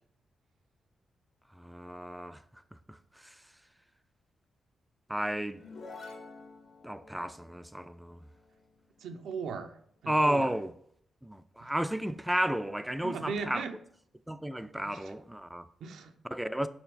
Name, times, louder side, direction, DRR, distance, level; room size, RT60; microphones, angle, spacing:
voice 1, 1.5-3.4 5.1-5.6 6.8-8.2 10.1-10.7 11.2-13.6 14.3-15.7 16.2-16.7, right 1 dB, 5° right, 0.3 m, -33 dB
sound 1, 5.5-9.1, left 3 dB, 65° left, 1.4 m, -50 dB
voice 2, 9.0-9.7 10.0-10.5 11.6-11.7 13.0-13.7 15.8-16.1, right 5 dB, 85° right, 0.6 m, -37 dB
5.8 x 4.4 x 4.1 m
cardioid pair, 120°, 0 cm